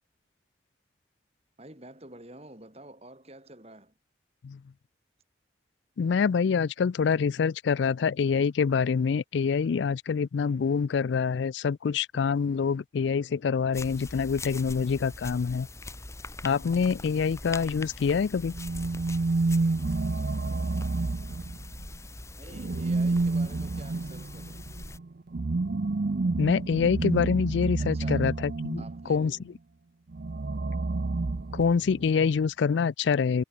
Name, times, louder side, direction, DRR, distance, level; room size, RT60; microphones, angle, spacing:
voice 1, 1.6-3.9 22.4-24.7 27.8-28.3 28.8-29.4, right 1 dB, 30° right, 3.0 m, -48 dB
voice 2, 6.0-15.7 16.4-18.5 26.4-29.4 31.5-33.4, left 6 dB, 70° left, 0.4 m, -26 dB
sound 1, 13.7-25.0, left 2 dB, 15° left, 2.8 m, -42 dB
sound 2, 18.5-21.9 22.5-29.1 30.1-32.1, right 3 dB, 55° right, 0.6 m, -29 dB
head